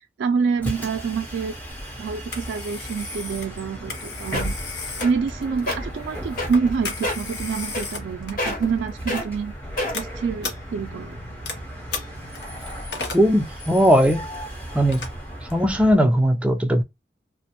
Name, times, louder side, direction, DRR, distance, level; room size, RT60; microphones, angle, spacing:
voice 1, 0.2-1.5 2.0-4.5 5.0-9.5 9.9-11.2, right 5 dB, 80° right, 0.3 m, -26 dB
Bus, 0.5-16.0, right 1 dB, 10° left, 0.8 m, -36 dB
Telephone, 1.7-16.0, left 4 dB, 75° left, 0.8 m, -37 dB
sound 1, 4.0-4.1 4.3-4.6 5.0-5.3 5.6-5.8 6.4-6.7 7.0-7.3 7.7-8.1 8.4-8.7 9.1-9.2 9.8-10.1 10.8-10.9, left 1 dB, 50° left, 1.0 m, -27 dB
voice 2, 13.1-14.3 14.7-15.1 15.5-16.8, equal, 5° right, 0.4 m, -18 dB
2.5 x 2.1 x 2.8 m
head